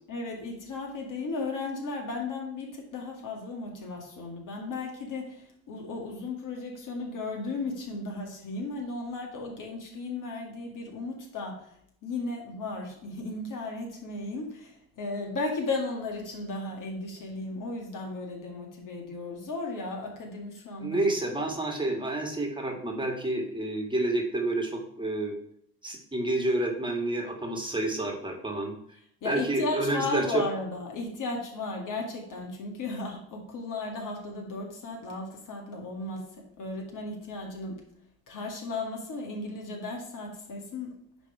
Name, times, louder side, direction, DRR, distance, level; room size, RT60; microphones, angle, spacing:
voice 1, 0.1-11.8 12.0-21.1 29.2-37.8 38.3-40.9, left 3 dB, 50° left, 1 dB, 2.2 m, -35 dB
voice 2, 20.8-25.3 25.8-28.7 29.2-30.4, right 2 dB, 10° right, 0 dB, 1.9 m, -29 dB
10.0 x 3.5 x 4.7 m, 0.71 s
figure-of-eight pair, 55°, 41 cm